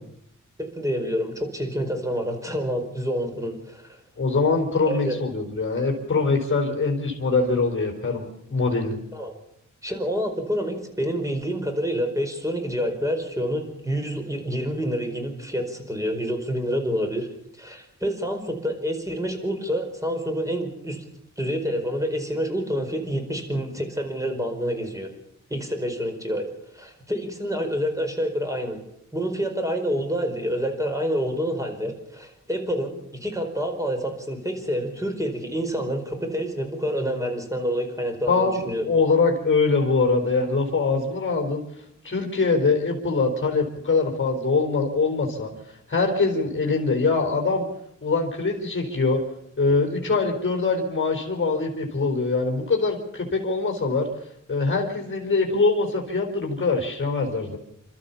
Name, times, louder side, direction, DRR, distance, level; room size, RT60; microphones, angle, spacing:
voice 1, 0.6-4.0 4.9-5.2 9.1-9.3 9.8-17.3 17.6-21.0 21.4-25.1 25.5-26.5 26.7-28.8 29.1-38.9, equal, 10° right, 4 dB, 4.9 m, -28 dB
voice 2, 4.2-9.0 38.3-47.7 48.0-49.2 49.6-57.6, left 4 dB, 40° left, 2 dB, 4.4 m, -23 dB
29.5 x 13.0 x 7.1 m, 0.75 s
wide cardioid pair, 95°, 31 cm